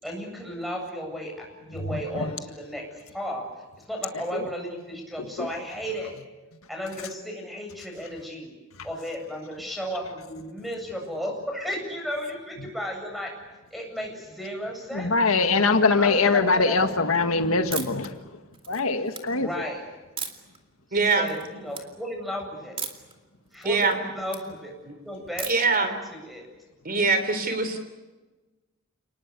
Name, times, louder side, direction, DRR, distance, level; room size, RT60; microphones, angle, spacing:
voice 1, 0.0-2.8 3.1-3.5 3.8-6.1 6.7-8.5 8.8-13.3 13.7-15.2 16.0-16.9 19.4-19.8 20.9-22.8 23.5-24.7 25.0-26.5, equal, ahead, 7.9 m, -34 dB
voice 2, 1.8-2.3 5.4-5.5 14.9-18.2 18.7-19.5, left 3 dB, 80° left, 1.8 m, -22 dB
sound 1, 17.7-18.1 18.5-19.2 20.2-20.6 21.0-21.4 21.7-21.8 22.8-23.1 23.5-24.4 25.4-25.8, right 6 dB, 25° right, 2.5 m, -35 dB
voice 3, 20.9-21.3 23.6-23.9 24.9-25.0 25.5-25.9 26.9-27.8, right 4 dB, 45° right, 3.4 m, -23 dB
29.5 x 20.0 x 8.3 m
head